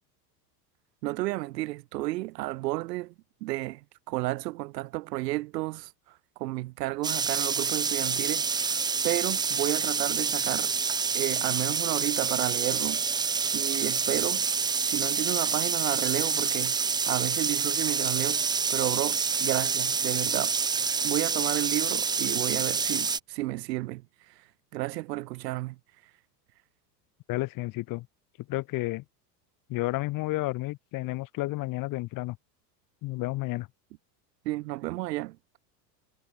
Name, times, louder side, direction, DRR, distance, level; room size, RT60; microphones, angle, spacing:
voice 1, 1.0-3.1 3.4-10.7 11.1-14.5 14.9-16.8 17.1-18.4 18.7-20.6 21.0-24.5 24.7-25.8 34.4-35.4, right 19 dB, 75° right, 2.9 m, -32 dB
sound 1, 7.0-23.2, right 5 dB, 10° right, 0.4 m, -27 dB
voice 2, 27.3-28.1 28.5-29.0 29.7-32.4 33.0-33.7, left 19 dB, 40° left, 1.0 m, -31 dB
supercardioid pair, 115°, 49 cm